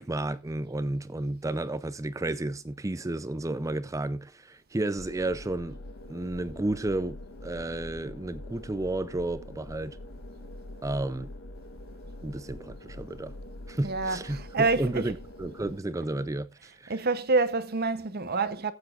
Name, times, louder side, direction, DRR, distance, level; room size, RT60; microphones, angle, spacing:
voice 1, 0.0-5.8 6.1-10.0 10.8-11.3 12.2-13.3 13.7-17.0, right 2 dB, 15° right, 0.4 m, -32 dB
sound 1, 5.0-15.8, left 1 dB, 60° left, 1.2 m, -44 dB
voice 2, 13.8-15.2 16.9-18.7, right 3 dB, 45° right, 0.8 m, -27 dB
17.0 x 8.3 x 2.4 m
head